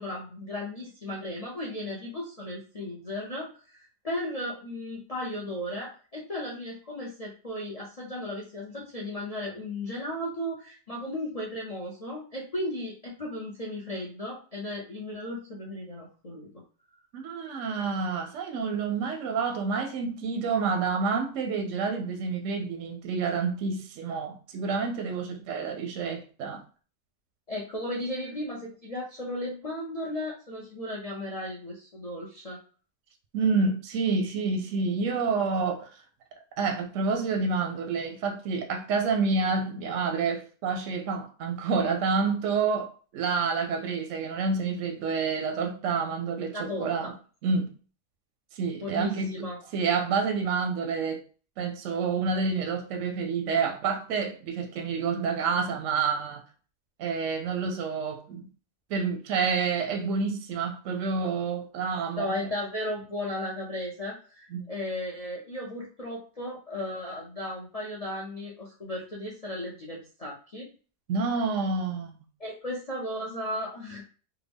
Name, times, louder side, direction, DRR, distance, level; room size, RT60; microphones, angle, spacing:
voice 1, 0.0-16.5 27.5-32.6 46.5-46.9 48.8-49.6 62.1-70.7 72.4-74.0, left 1 dB, 75° left, 0.3 m, -35 dB
voice 2, 17.1-26.6 33.3-35.9 36.6-47.1 47.4-47.7 48.5-49.5 49.7-51.2 51.6-56.4 57.0-58.5 58.9-62.4 64.5-64.7 71.1-72.1, right 5 dB, 70° right, 0.8 m, -28 dB
3.5 x 2.0 x 3.4 m
omnidirectional pair, 1.7 m